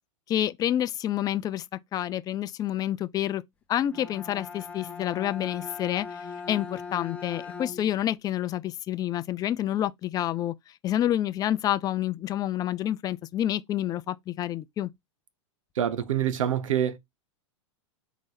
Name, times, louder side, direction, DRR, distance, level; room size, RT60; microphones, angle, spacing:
voice 1, 0.3-1.6 1.9-3.4 3.7-6.2 6.5-10.5 10.8-14.9, left 12 dB, 25° left, 0.4 m, -28 dB
Bowed string instrument, 3.8-8.1, left 5 dB, 10° left, 0.8 m, -40 dB
voice 2, 15.8-17.0, right 10 dB, 80° right, 0.8 m, -26 dB
3.7 x 3.1 x 3.9 m
hypercardioid pair, 115°, 16 cm